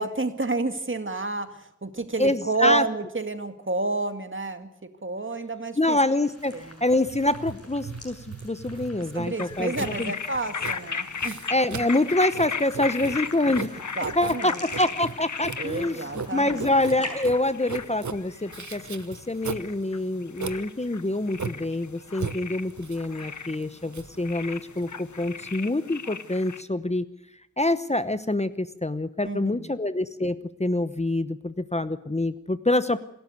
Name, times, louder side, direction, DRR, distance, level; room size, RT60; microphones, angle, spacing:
voice 1, 0.0-4.7 5.0-6.0 6.5-6.8 9.0-11.4 14.0-14.7 15.6-16.8 29.2-29.8, right 3 dB, 40° right, 8 dB, 2.2 m, -30 dB
voice 2, 2.2-2.8 5.8-10.1 11.5-13.8 14.2-27.1 27.6-33.0, left 2 dB, 20° left, 13 dB, 0.9 m, -26 dB
sound 1, 6.0-17.3, left 2 dB, 55° left, 7.8 m, -47 dB
Writing, 6.4-25.6, right 5 dB, 75° right, 1.1 m, -38 dB
sound 2, 9.4-26.6, left 5 dB, 80° left, 1.1 m, -37 dB
27.0 x 12.5 x 9.3 m, 0.80 s
wide cardioid pair, 50°, 29 cm